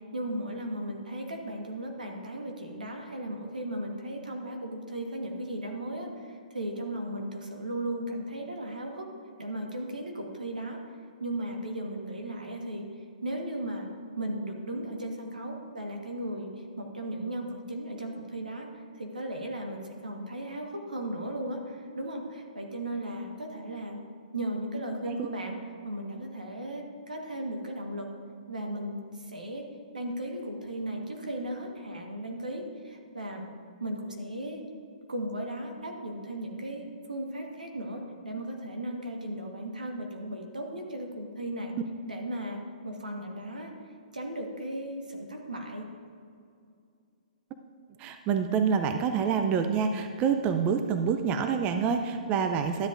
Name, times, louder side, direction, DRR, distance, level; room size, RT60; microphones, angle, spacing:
voice 1, 0.1-9.1 9.4-10.8 11.2-12.8 13.2-24.0 24.3-25.6 25.8-28.1 28.5-29.7 29.9-33.5 33.8-34.6 35.1-41.7 42.1-43.7 44.1-45.8, right 1 dB, 85° right, 2 dB, 1.4 m, -36 dB
voice 2, 48.0-52.9, right 6 dB, 30° right, 7 dB, 0.4 m, -27 dB
12.5 x 7.8 x 2.6 m, 2.4 s
hypercardioid pair, 125°, 4 cm